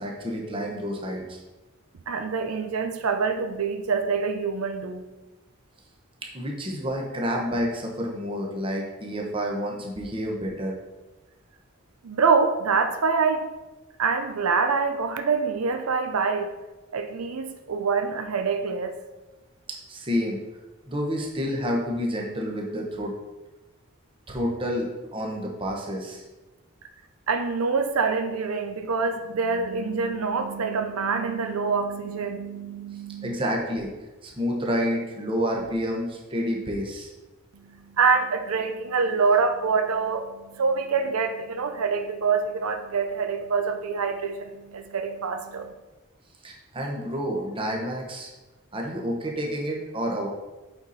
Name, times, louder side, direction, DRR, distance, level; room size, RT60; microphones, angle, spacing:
voice 1, 0.0-1.4 6.3-10.7 19.9-20.4 20.9-23.1 24.3-26.2 33.2-33.9 34.2-37.1 46.4-48.3 48.7-50.3, equal, 25° right, -1 dB, 1.1 m, -29 dB
voice 2, 2.1-5.0 12.0-13.5 14.0-16.5 16.9-18.9 27.3-33.4 37.6-45.7, right 5 dB, 85° right, 7 dB, 0.6 m, -25 dB
7.9 x 4.3 x 4.1 m, 1.1 s
head